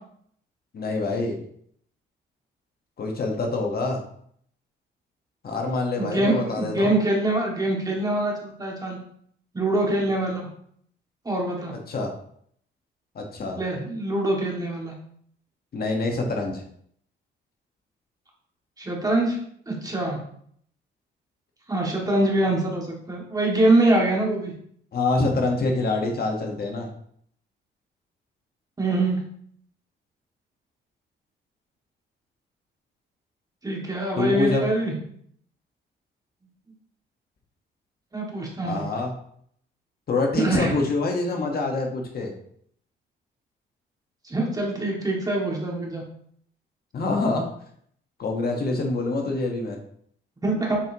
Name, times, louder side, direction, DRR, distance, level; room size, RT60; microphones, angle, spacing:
voice 1, 0.7-1.4 3.0-4.0 5.4-6.9 11.9-12.1 13.1-13.6 15.7-16.6 24.9-26.9 34.2-34.7 38.6-39.1 40.1-42.3 46.9-47.4 48.2-49.8, left 3 dB, 50° left, 2 dB, 1.3 m, -25 dB
voice 2, 6.0-9.0 9.5-10.5 11.3-11.7 13.6-14.9 18.8-19.4 19.7-20.2 21.7-24.5 28.8-29.2 33.6-34.9 38.1-38.9 40.3-40.8 44.2-46.0 50.4-50.8, right 2 dB, 20° right, -2 dB, 2.0 m, -24 dB
7.3 x 4.4 x 2.9 m, 0.64 s
cardioid pair, 90°, 20 cm